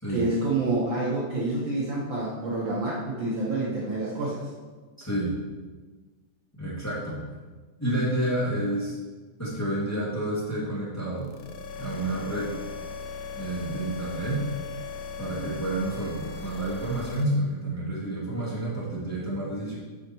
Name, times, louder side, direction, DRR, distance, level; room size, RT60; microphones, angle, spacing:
voice 1, 0.1-4.5, right 2 dB, 85° right, -5 dB, 1.0 m, -28 dB
voice 2, 5.0-5.3 6.6-7.2 7.8-9.0 9.4-11.3 11.8-12.5 13.3-14.4 15.2-19.8, right 1 dB, 5° left, -8 dB, 1.7 m, -29 dB
sound 1, 11.2-17.2, left 4 dB, 75° left, 1.5 m, -38 dB
9.5 x 5.4 x 4.4 m, 1.4 s
omnidirectional pair, 3.8 m